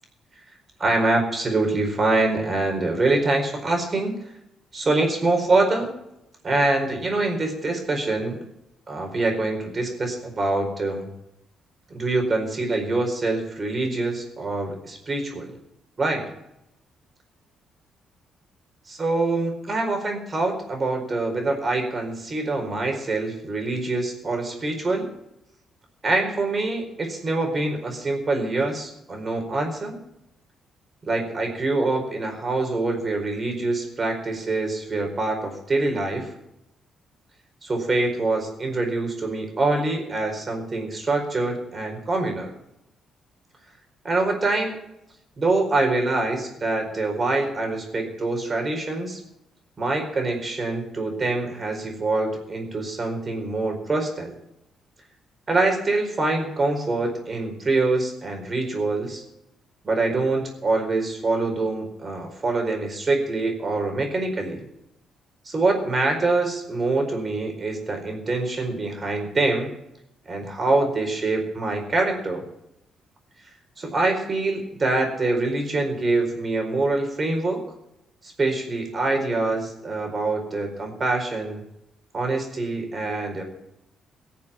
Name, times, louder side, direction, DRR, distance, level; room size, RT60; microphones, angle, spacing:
voice 1, 0.8-4.1 4.7-5.9 6.4-8.4 8.9-11.1 11.9-15.5 16.0-16.2 18.9-25.1 26.0-30.0 31.0-36.3 37.6-42.5 44.0-44.8 45.4-49.2 49.8-54.3 55.5-59.2 59.8-64.6 65.4-69.7 70.3-72.4 73.8-77.6 78.2-81.6 82.1-83.4, right 2 dB, 35° right, 3 dB, 4.6 m, -25 dB
18.0 x 7.3 x 7.2 m, 0.82 s
cardioid pair, 90°, 0 cm